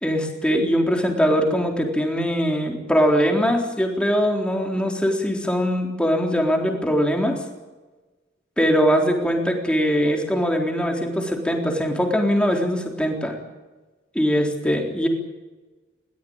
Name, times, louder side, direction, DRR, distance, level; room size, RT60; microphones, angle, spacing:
voice 1, 0.0-7.4 8.6-13.3 14.1-15.1, equal, 5° left, 2 dB, 3.8 m, -21 dB
21.5 x 19.0 x 9.0 m, 1.2 s
head